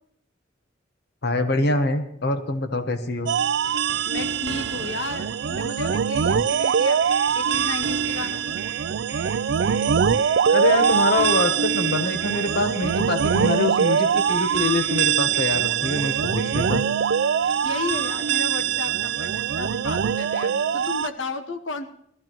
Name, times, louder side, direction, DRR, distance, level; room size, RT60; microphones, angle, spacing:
voice 1, 1.2-3.3 10.5-16.9, left 2 dB, 60° left, 7 dB, 1.0 m, -24 dB
sound 1, 3.3-21.1, right 7 dB, 65° right, 0.4 m, -23 dB
voice 2, 4.0-7.0 7.3-8.6 17.6-21.9, left 3 dB, 85° left, 7 dB, 1.1 m, -33 dB
sound 2, 6.5-16.7, right 3 dB, 15° right, 1.6 m, -44 dB
20.5 x 13.5 x 3.1 m, 0.69 s
head